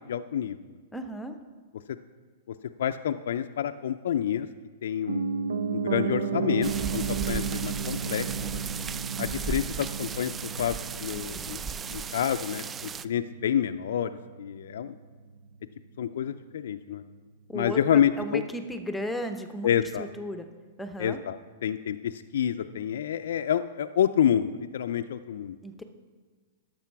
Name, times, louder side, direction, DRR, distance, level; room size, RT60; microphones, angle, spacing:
voice 1, 0.1-0.6 2.8-4.5 4.8-5.3 5.7-8.3 8.5-8.6 9.2-10.3 10.6-11.6 11.9-14.9 16.0-17.0 17.5-18.4 19.6-20.1 21.0-25.6, left 9 dB, 70° left, 9 dB, 0.4 m, -28 dB
voice 2, 0.9-1.4 9.2-9.3 17.5-20.5 20.8-21.2 25.6-25.8, equal, 5° left, 7 dB, 0.8 m, -35 dB
Piano, 5.1-15.1 15.4-15.5, right 6 dB, 85° right, 0.5 m, -33 dB
sound 1, 6.6-13.0, right 6 dB, 20° right, 0.3 m, -36 dB
11.5 x 6.7 x 4.6 m, 1.5 s
hypercardioid pair, 120°, 0 cm